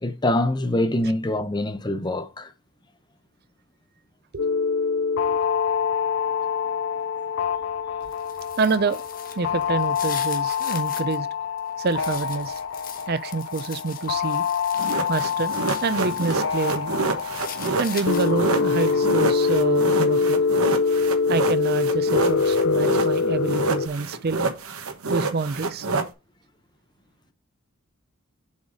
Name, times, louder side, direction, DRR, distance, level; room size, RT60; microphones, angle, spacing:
voice 1, 0.0-2.5, left 1 dB, 20° left, 0.7 m, -24 dB
sound 1, 4.4-23.9, left 5 dB, 65° left, 0.5 m, -24 dB
sound 2, 8.0-11.2 11.6-16.4 16.8-18.5, left 8 dB, 40° left, 1.3 m, -41 dB
voice 2, 8.6-9.0 9.3-11.3 11.8-12.6 13.1-14.4 15.1-17.0 17.8-20.4 21.3-24.4 25.1-25.9, right 4 dB, 45° right, 0.5 m, -27 dB
sound 3, 14.8-23.2 23.5-26.1, right 3 dB, 80° right, 1.3 m, -28 dB
7.1 x 4.0 x 4.9 m
head